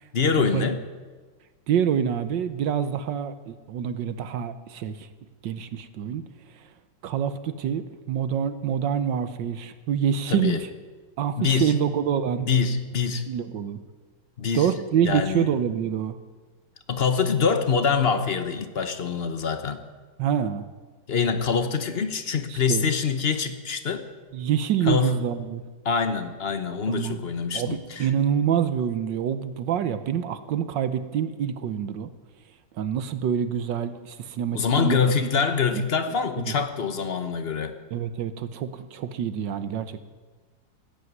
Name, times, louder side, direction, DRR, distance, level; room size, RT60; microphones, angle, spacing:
voice 1, 0.1-0.8 10.3-10.6 11.4-11.7 12.5-13.3 14.4-14.7 15.0-15.5 16.9-19.8 21.1-24.0 24.8-25.1 25.8-28.1 34.5-37.7, left 6 dB, 40° left, 9 dB, 0.9 m, -25 dB
voice 2, 1.7-5.1 5.4-6.2 7.0-10.7 11.2-12.5 13.3-13.8 14.5-16.2 20.2-20.7 22.5-22.8 24.3-25.6 26.9-27.2 27.5-32.1 32.8-35.0 35.7-35.8 36.5-36.6 37.9-40.0, right 8 dB, 70° right, 12 dB, 1.4 m, -26 dB
16.0 x 9.0 x 9.5 m, 1.4 s
omnidirectional pair, 2.2 m